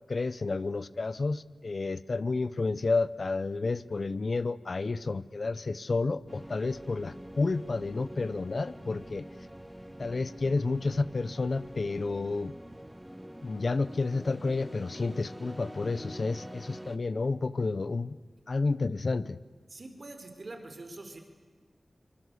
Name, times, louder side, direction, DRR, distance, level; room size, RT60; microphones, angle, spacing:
voice 1, 0.1-9.2 10.0-12.5 13.4-18.2 18.5-19.4, left 3 dB, 55° left, 17 dB, 0.9 m, -30 dB
sound 1, 6.2-12.9, right 2 dB, 30° right, 2.5 m, -57 dB
sound 2, 6.3-17.0, equal, 5° right, 1.4 m, -46 dB
voice 2, 19.7-21.2, right 2 dB, 50° right, 6 dB, 4.2 m, -44 dB
25.5 x 25.0 x 8.3 m, 1.5 s
wide cardioid pair, 100°, 0 cm